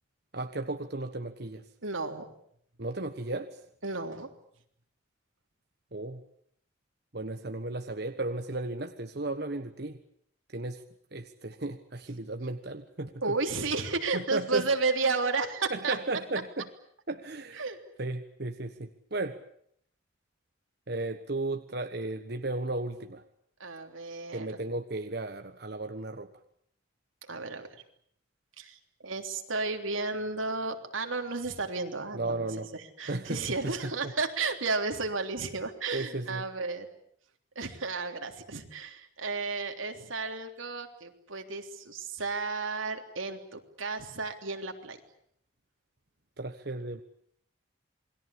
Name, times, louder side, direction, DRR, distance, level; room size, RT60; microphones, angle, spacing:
voice 1, 0.3-1.6 2.8-3.6 5.9-6.2 7.1-10.0 10.5-10.8 11.1-13.3 14.1-14.7 15.7-16.7 17.1-17.7 18.0-19.4 20.9-23.2 24.3-26.3 32.1-32.7 33.1-34.1 35.9-36.4 46.4-47.0, right 2 dB, 55° right, 7 dB, 1.3 m, -35 dB
voice 2, 1.8-2.3 3.8-4.3 13.2-16.0 17.6-17.8 23.6-24.5 27.3-27.8 28.6-32.5 32.7-36.9 37.5-45.0, right 3 dB, 85° right, 5 dB, 3.4 m, -33 dB
28.5 x 21.5 x 8.6 m, 0.68 s
head